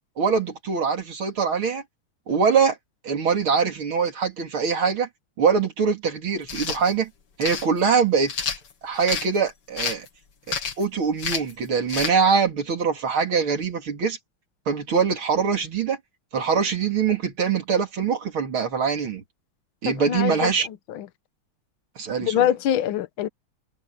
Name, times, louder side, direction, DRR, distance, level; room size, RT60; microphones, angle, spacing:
voice 1, 0.2-1.8 2.3-2.8 3.0-5.1 5.4-7.1 7.4-8.3 8.8-10.1 10.5-14.2 14.7-16.0 16.3-19.2 19.8-20.7 22.0-22.5, right 6 dB, 70° right, 3.5 m, -23 dB
sound 1, 6.4-6.8 7.4-7.7 8.3-9.3 9.8-10.1 10.5-10.8 11.2-11.5 11.9-12.1, left 6 dB, 55° left, 2.2 m, -29 dB
voice 2, 19.8-20.5 20.9-21.1 22.2-23.3, left 11 dB, 70° left, 1.7 m, -24 dB
omnidirectional pair, 2.4 m